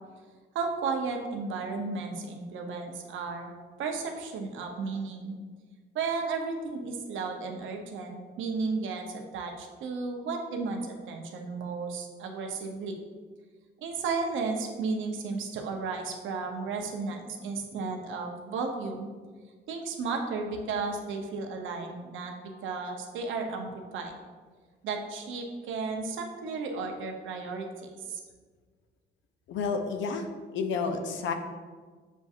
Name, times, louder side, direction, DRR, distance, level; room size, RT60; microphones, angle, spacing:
voice 1, 0.5-3.5 3.8-5.4 5.9-13.0 13.8-19.1 19.7-24.1 24.8-28.2, right 4 dB, 80° right, 3 dB, 0.6 m, -34 dB
voice 2, 29.5-30.3 30.5-31.3, left 5 dB, 70° left, 6 dB, 0.5 m, -30 dB
7.0 x 2.7 x 2.4 m, 1.5 s
cardioid pair, 90°, 20 cm